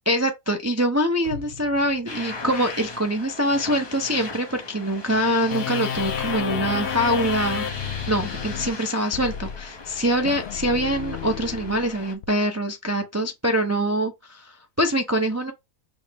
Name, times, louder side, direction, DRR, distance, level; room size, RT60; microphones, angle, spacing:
voice 1, 0.1-7.7 8.1-15.5, equal, 25° right, 0.3 m, -24 dB
sound 1, 1.2-3.4 3.8-3.9, left 3 dB, 80° right, 3.4 m, -43 dB
sound 2, 2.1-12.1, left 3 dB, 25° left, 0.6 m, -37 dB
sound 3, 5.5-12.3, left 9 dB, 70° left, 0.6 m, -32 dB
6.3 x 2.1 x 3.4 m
omnidirectional pair, 1.6 m